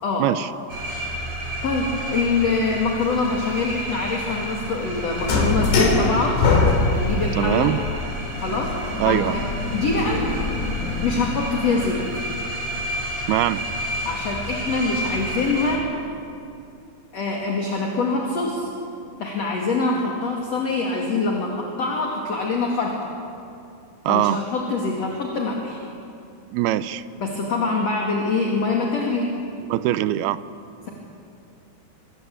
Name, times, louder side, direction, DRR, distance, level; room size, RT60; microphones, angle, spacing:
sound 1, 0.7-15.8, equal, 45° right, 6.2 m, -31 dB
voice 1, 1.6-6.4 6.9-7.7 8.4-8.8 9.1-9.4 9.7-10.3 11.0-12.2 14.0-15.9 17.1-18.7 19.2-23.0 24.1-25.8 27.2-29.3, left 3 dB, 45° left, -1 dB, 3.1 m, -24 dB
sound 2, 5.2-11.3, left 3 dB, 85° left, 5.5 m, -23 dB
voice 2, 7.4-7.8 9.0-9.4 13.3-13.6 24.1-24.4 26.5-27.0 29.7-30.4, right 14 dB, 80° right, 14 dB, 2.5 m, -22 dB
24.5 x 22.0 x 8.6 m, 2.5 s
omnidirectional pair, 4.8 m